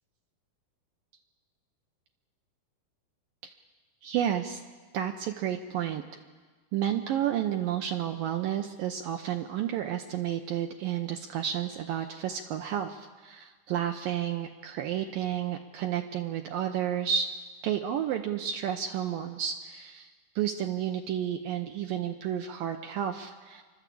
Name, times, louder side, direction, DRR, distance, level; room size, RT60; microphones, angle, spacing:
voice 1, 4.0-4.6 4.9-6.0 6.7-17.3 17.6-20.1 20.4-23.6, right 10 dB, 75° right, 5 dB, 2.2 m, -31 dB
27.5 x 12.5 x 8.5 m, 1.4 s
omnidirectional pair, 4.7 m